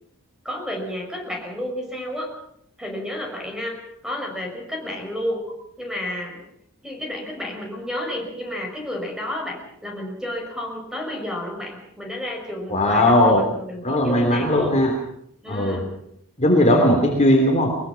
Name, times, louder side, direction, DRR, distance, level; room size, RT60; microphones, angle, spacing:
voice 1, 0.4-2.3 2.8-3.8 4.0-5.4 5.8-6.4 6.8-14.8 15.4-15.9, left 1 dB, 5° right, 1 dB, 5.9 m, -31 dB
voice 2, 12.7-13.5 13.8-14.9 15.5-15.8 16.4-17.8, left 1 dB, 30° left, 2 dB, 3.2 m, -18 dB
22.0 x 21.5 x 6.0 m, 0.73 s
head